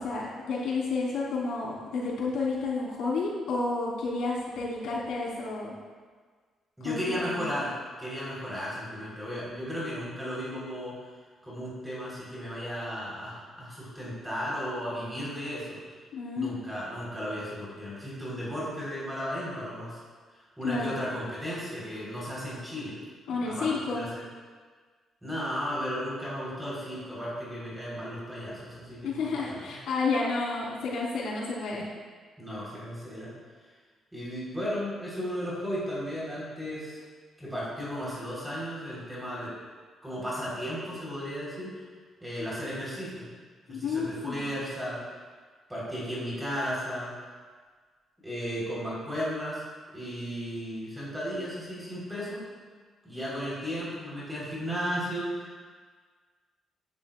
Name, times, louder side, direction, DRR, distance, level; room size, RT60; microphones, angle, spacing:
voice 1, 0.0-5.7 6.8-7.5 16.1-16.6 20.6-21.0 23.3-24.0 29.0-31.9 43.7-44.5, left 3 dB, 75° left, -5 dB, 3.9 m, -31 dB
voice 2, 6.8-7.7 8.0-11.0 11.4-15.8 16.4-20.0 20.6-23.0 23.3-24.1 25.2-29.1 29.5-29.7 32.4-33.3 34.1-37.0 37.4-39.5 40.0-41.8 42.2-43.3 43.7-45.0 45.7-47.1 48.2-49.6 49.9-52.5 53.0-55.5, equal, 5° right, -7 dB, 3.9 m, -35 dB
17.5 x 11.0 x 2.4 m, 1.5 s
cardioid pair, 180°, 0 cm